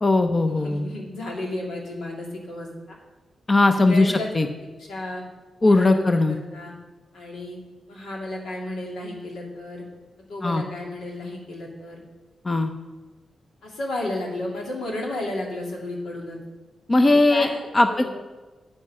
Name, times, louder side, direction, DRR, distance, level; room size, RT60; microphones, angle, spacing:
voice 1, 0.0-0.9 3.5-4.5 5.6-6.4 10.4-10.6 12.4-12.7 16.9-18.1, left 2 dB, 35° left, 7 dB, 0.8 m, -19 dB
voice 2, 0.6-3.0 3.7-4.3 4.8-5.2 5.6-6.7 7.1-7.6 7.9-9.8 10.3-12.0 13.6-16.4 17.0-18.1, left 1 dB, 90° left, -2 dB, 2.5 m, -33 dB
9.0 x 8.7 x 5.6 m, 1.3 s
cardioid pair, 65°, 0 cm